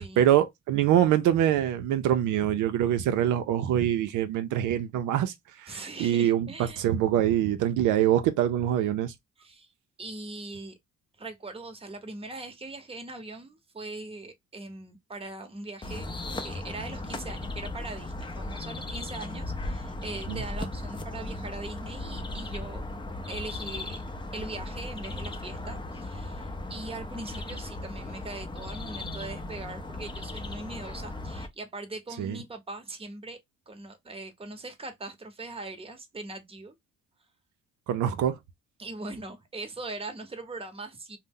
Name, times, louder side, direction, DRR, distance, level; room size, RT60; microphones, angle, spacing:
voice 1, 0.2-5.3 5.6-6.5 6.8-9.1 20.3-20.4 32.2-32.4 37.9-38.4, right 11 dB, 80° right, 0.5 m, -24 dB
voice 2, 5.7-6.9 9.4-9.7 10.0-10.8 11.2-16.1 16.4-22.9 23.3-24.0 24.3-33.4 33.7-36.7 38.8-41.2, right 2 dB, 20° right, 0.8 m, -41 dB
sound 1, 15.8-31.5, left 2 dB, 15° left, 0.5 m, -37 dB
2.6 x 2.0 x 3.5 m
cardioid pair, 90°, 30 cm